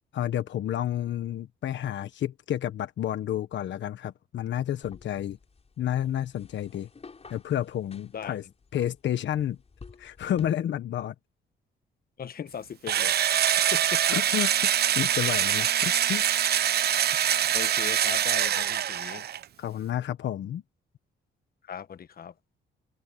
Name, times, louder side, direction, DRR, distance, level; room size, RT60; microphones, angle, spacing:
voice 1, 0.1-5.4 5.8-6.9 7.3-8.4 8.7-9.6 10.0-11.1 14.1-16.2 19.6-20.6, left 11 dB, 65° left, 1.3 m, -30 dB
sound 1, 4.8-10.5, left 4 dB, 30° left, 5.3 m, -52 dB
voice 2, 12.2-13.3 13.7-14.2 17.5-19.3 21.6-22.3, left 8 dB, 50° left, 1.3 m, -38 dB
Engine / Drill, 12.9-19.4, right 10 dB, 55° right, 0.7 m, -24 dB
cardioid pair, 90°, 20 cm